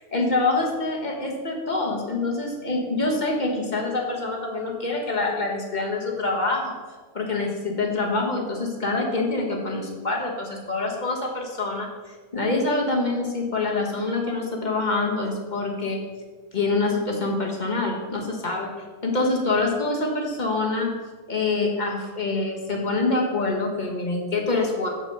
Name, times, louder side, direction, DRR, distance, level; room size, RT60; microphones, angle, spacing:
voice 1, 0.0-6.7 7.1-16.0 16.5-18.7 19.0-21.0 21.3-24.9, left 3 dB, 30° left, 0 dB, 1.3 m, -25 dB
6.6 x 6.2 x 6.6 m, 1.4 s
omnidirectional pair, 1.6 m